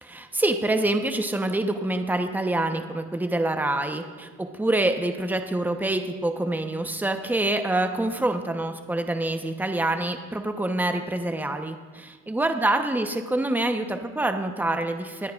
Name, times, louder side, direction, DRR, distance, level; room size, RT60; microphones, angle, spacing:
voice 1, 0.1-15.3, right 2 dB, 5° right, 6 dB, 0.9 m, -26 dB
24.5 x 9.0 x 2.4 m, 1.4 s
cardioid pair, 90°, 30 cm